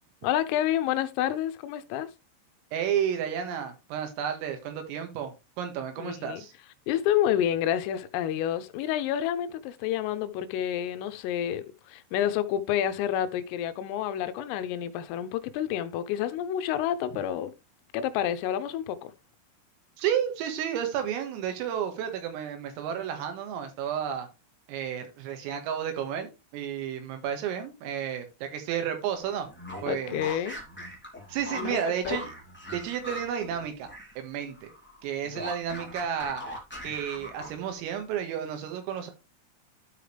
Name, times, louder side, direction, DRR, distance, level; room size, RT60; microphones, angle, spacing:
voice 1, 0.2-2.1 6.0-6.4 6.9-17.5 17.9-19.1 29.9-30.6 31.5-31.8 32.1-32.2, left 11 dB, 85° left, 3.3 m, -29 dB
voice 2, 2.7-6.5 20.0-24.3 24.7-29.5 29.8-30.2 31.3-32.3 32.7-33.9 34.2-34.7 35.0-36.4 36.8-39.1, right 9 dB, 85° right, 4.3 m, -32 dB
sound 1, 29.5-34.2 34.5-37.8, equal, 15° left, 0.3 m, -41 dB
12.5 x 5.0 x 3.4 m
omnidirectional pair, 5.9 m